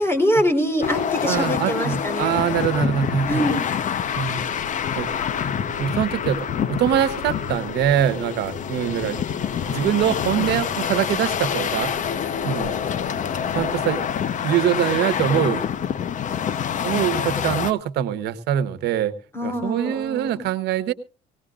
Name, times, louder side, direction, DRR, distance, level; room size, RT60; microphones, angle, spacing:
voice 1, 0.0-2.4 3.3-3.6 19.3-20.4, equal, 15° left, 5 dB, 3.6 m, -24 dB
sound 1, 0.8-17.7, left 8 dB, 50° left, 0.9 m, -26 dB
voice 2, 1.3-3.5 4.2-4.4 5.0-5.1 5.8-9.2 9.7-11.9 12.4-12.7 13.5-14.0 14.4-15.6 16.8-19.1 19.4-20.9, right 10 dB, 80° right, 13 dB, 1.1 m, -23 dB
sound 2, 4.0-14.1, left 5 dB, 65° left, 5.4 m, -37 dB
19.0 x 18.0 x 2.5 m, 0.36 s
cardioid pair, 110°, 17 cm